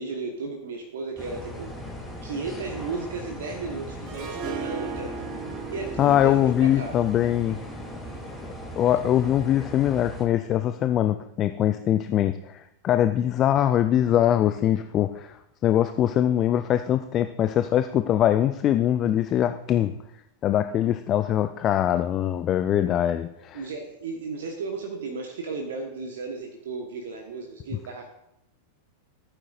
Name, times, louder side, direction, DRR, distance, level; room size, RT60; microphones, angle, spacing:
voice 1, 0.0-1.7 2.2-5.1 5.7-7.0 23.5-28.1, right 4 dB, 60° right, 2 dB, 1.2 m, -34 dB
sound 1, 1.2-10.3, left 1 dB, ahead, 2.7 m, -39 dB
Harp, 4.1-9.1, right 6 dB, 40° right, 1.2 m, -38 dB
voice 2, 6.0-7.6 8.4-19.9 20.4-23.6, left 11 dB, 30° left, 10 dB, 0.4 m, -23 dB
15.0 x 8.9 x 2.5 m, 0.83 s
figure-of-eight pair, 90°, 0 cm